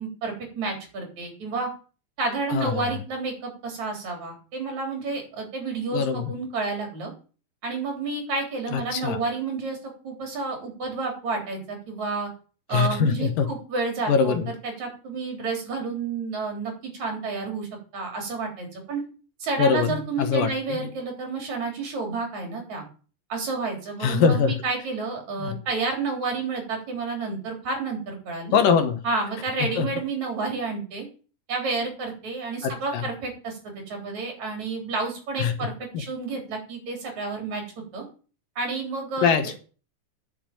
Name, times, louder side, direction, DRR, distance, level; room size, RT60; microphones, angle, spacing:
voice 1, 0.0-1.7 2.2-7.1 7.6-9.8 10.0-12.3 12.7-17.7 17.9-19.0 19.4-22.8 23.3-28.6 29.0-31.1 31.5-35.7 36.0-38.0 38.6-39.3, right 4 dB, 50° right, 2 dB, 4.9 m, -30 dB
voice 2, 2.5-2.9 5.9-6.3 8.7-9.2 12.7-13.5 14.1-14.5 19.6-20.9 24.0-24.6 25.4-25.6 28.5-29.0 29.8-29.9 32.6-33.1 35.4-35.5 39.2-39.6, left 6 dB, 70° left, 8 dB, 2.8 m, -23 dB
10.0 x 6.9 x 8.9 m, 0.38 s
omnidirectional pair, 4.2 m